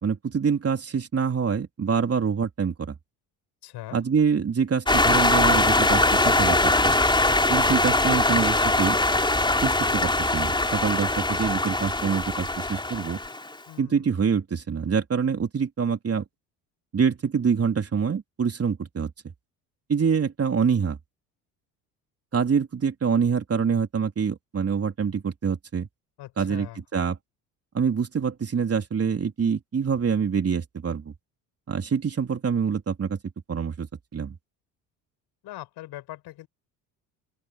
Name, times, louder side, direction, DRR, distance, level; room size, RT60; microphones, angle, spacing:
voice 1, 0.0-2.9 3.9-6.9 7.5-9.0 9.6-13.2 13.8-16.2 16.9-19.1 19.9-21.0 22.3-25.9 26.4-27.2 27.7-31.1 31.7-33.2 33.5-33.9 34.1-34.4, right 6 dB, 35° right, 3.7 m, -25 dB
voice 2, 3.6-4.0 13.7-14.2 26.2-26.8 35.4-36.5, left 15 dB, 70° left, 5.8 m, -41 dB
sound 1, 4.9-13.5, left 2 dB, 10° left, 3.9 m, -22 dB
open air
supercardioid pair, 75°, 41 cm